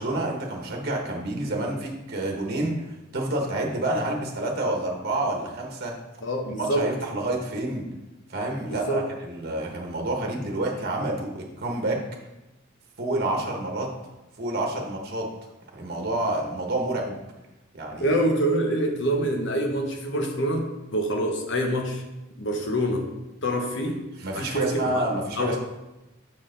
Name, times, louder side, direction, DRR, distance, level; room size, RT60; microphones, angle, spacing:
voice 1, 0.0-2.8 3.1-5.9 6.6-7.9 8.3-12.0 13.0-13.9 14.4-15.3 15.7-17.2 17.7-18.1 24.2-25.6, right 1 dB, 50° right, 0 dB, 1.1 m, -28 dB
voice 2, 6.2-6.9 8.6-9.1 18.0-22.0 22.4-23.1 23.4-24.0 24.3-25.1 25.4-25.6, right 1 dB, 65° left, 3 dB, 1.1 m, -26 dB
6.4 x 5.9 x 3.9 m, 1.0 s
head